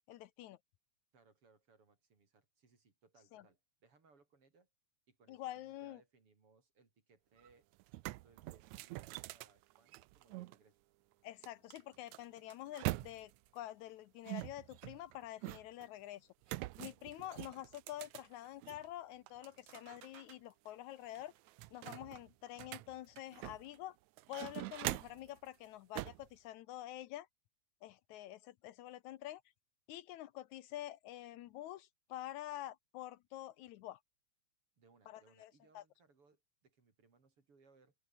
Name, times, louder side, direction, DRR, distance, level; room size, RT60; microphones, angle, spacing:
voice 1, 0.1-0.6 3.3-3.4 5.3-6.0 11.2-16.3 16.8-21.3 21.7-24.0 24.3-27.3 27.8-29.4 29.9-34.0 35.1-35.8, left 14 dB, 75° left, 2.1 m, -48 dB
voice 2, 1.1-4.7 5.1-7.7 8.0-10.8 24.7-24.8 34.8-37.9, right 4 dB, 45° right, 4.8 m, -69 dB
sound 1, 7.4-7.5 7.8-10.5 11.4-13.5 14.3-15.9 16.4-18.9 19.3-20.3 20.7-20.8 21.1-23.8 24.2-25.3 25.9-26.3, right 18 dB, 80° right, 1.9 m, -44 dB
omnidirectional pair, 3.5 m